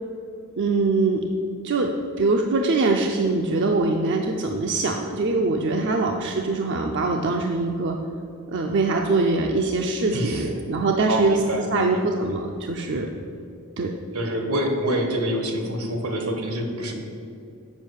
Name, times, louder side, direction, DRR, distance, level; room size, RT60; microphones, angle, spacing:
voice 1, 0.6-1.3 1.6-1.9 2.2-8.0 8.5-11.4 11.7-13.1 13.8-13.9, right 3 dB, 55° right, 2 dB, 0.5 m, -23 dB
voice 2, 10.1-10.5 11.1-12.0 14.1-16.9, right 1 dB, 80° right, 3 dB, 1.2 m, -26 dB
7.4 x 5.1 x 6.3 m, 2.5 s
head